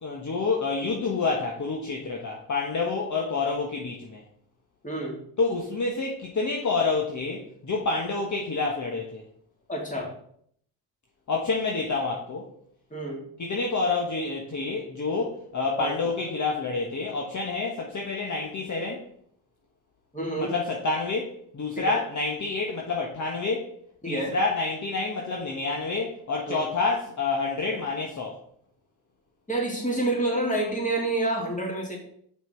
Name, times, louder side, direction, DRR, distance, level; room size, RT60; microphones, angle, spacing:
voice 1, 0.0-4.2 5.4-9.2 11.3-12.5 13.4-19.0 20.4-23.7 24.1-28.4, left 3 dB, 40° left, 0 dB, 1.4 m, -28 dB
voice 2, 4.8-5.2 9.7-10.1 12.9-13.2 15.8-15.9 20.1-20.5 21.8-22.0 24.0-24.3 26.5-26.6 29.5-32.0, right 2 dB, 15° left, -1 dB, 3.0 m, -28 dB
5.7 x 5.7 x 4.6 m, 0.64 s
hypercardioid pair, 60°, 46 cm